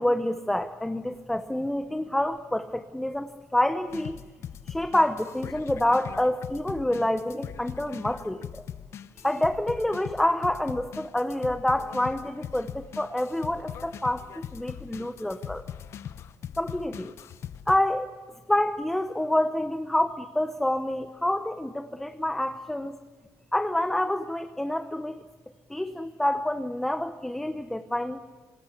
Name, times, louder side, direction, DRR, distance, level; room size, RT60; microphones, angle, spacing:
voice 1, 0.0-4.2 4.7-8.6 9.2-15.6 16.6-17.1 17.7-18.1 18.5-23.0 23.5-25.2 25.7-28.2, left 1 dB, 5° left, 9 dB, 0.7 m, -27 dB
sound 1, 3.9-17.8, left 9 dB, 40° left, 0.9 m, -40 dB
26.0 x 21.0 x 8.2 m, 1.4 s
cardioid pair, 160°, 7 cm